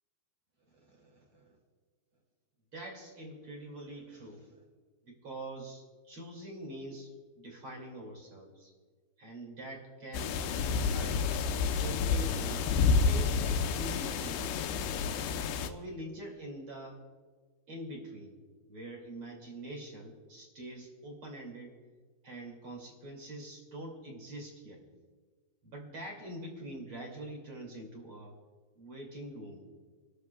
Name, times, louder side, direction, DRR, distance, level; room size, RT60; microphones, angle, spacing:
voice 1, 0.7-1.6 2.7-4.6 5.0-8.7 9.2-11.3 11.6-14.8 15.5-17.0 17.7-18.4 18.7-21.7 22.2-24.8 25.6-28.3 28.7-29.7, right 1 dB, 35° right, 0 dB, 2.7 m, -45 dB
sound 1, 10.1-15.7, left 5 dB, 90° left, 2.9 m, -29 dB
29.5 x 13.5 x 2.3 m, 1.5 s
omnidirectional pair, 4.8 m